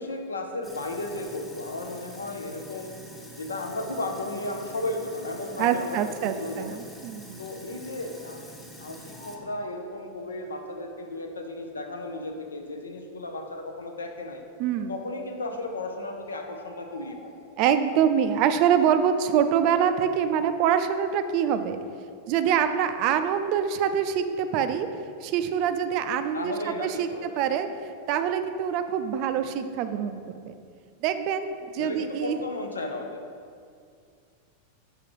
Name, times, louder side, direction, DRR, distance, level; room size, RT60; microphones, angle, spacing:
voice 1, 0.0-2.9 3.4-6.8 7.4-8.4 8.8-14.4 14.9-17.3 26.3-27.7 31.8-33.2, left 2 dB, 75° left, 4 dB, 0.7 m, -34 dB
Sink (filling or washing), 0.6-9.4, equal, 10° left, 0.9 m, -46 dB
voice 2, 5.6-7.4 14.6-14.9 17.6-21.8 22.3-24.9 25.2-30.5 31.0-32.4, right 8 dB, 45° right, 9 dB, 0.4 m, -25 dB
Bird, 7.7-8.6 8.9-10.7 11.6-11.7 12.3-12.4 12.6-12.7 13.3-13.8 14.8-14.9 15.2-15.3 15.5-17.8 18.2-18.5 18.8-20.2 20.5-20.8, left 1 dB, 30° left, 1.2 m, -52 dB
6.0 x 4.8 x 4.7 m, 2.3 s
figure-of-eight pair, 90°, 0 cm